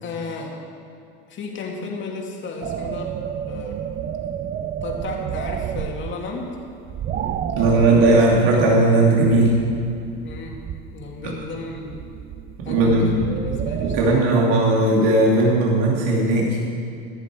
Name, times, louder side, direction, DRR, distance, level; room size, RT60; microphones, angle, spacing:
voice 1, 0.0-0.5 1.3-3.1 3.5-3.8 4.8-6.6 7.5-8.6 10.2-10.6 10.9-12.0 12.6-14.5, left 4 dB, 40° left, 0 dB, 2.6 m, -34 dB
sound 1, 2.6-14.2, right 9 dB, 30° right, 0.6 m, -31 dB
voice 2, 7.6-9.6 11.2-11.4 12.7-13.1 13.8-16.6, right 2 dB, 70° right, -3 dB, 2.7 m, -17 dB
16.0 x 11.5 x 4.7 m, 2.5 s
supercardioid pair, 105°, 30 cm